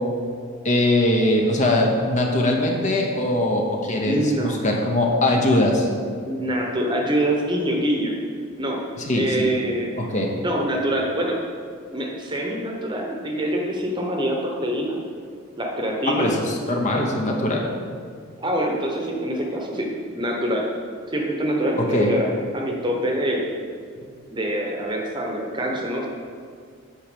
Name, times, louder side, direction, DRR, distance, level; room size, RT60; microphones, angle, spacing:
voice 1, 0.6-5.9 9.0-9.5 10.0-10.3 16.1-17.7 21.8-22.1, left 1 dB, 35° left, 1 dB, 0.9 m, -21 dB
voice 2, 4.0-4.6 6.2-8.1 8.6-8.8 9.1-9.9 10.4-11.4 11.9-15.0 15.5-16.3 18.4-20.7 21.1-23.4 24.3-26.1, right 1 dB, 20° right, 0 dB, 1.0 m, -25 dB
8.5 x 6.1 x 5.1 m, 2.1 s
head